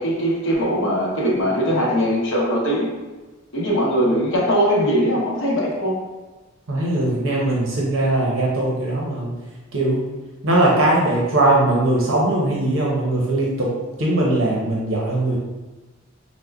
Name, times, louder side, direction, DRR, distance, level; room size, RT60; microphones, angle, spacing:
voice 1, 0.0-2.9 3.5-6.0, equal, 70° left, -4 dB, 0.8 m, -20 dB
voice 2, 6.7-9.3 9.7-10.0 10.4-13.7 14.0-15.4, right 1 dB, 85° right, -4 dB, 0.7 m, -20 dB
5.1 x 2.1 x 2.3 m, 1.2 s
head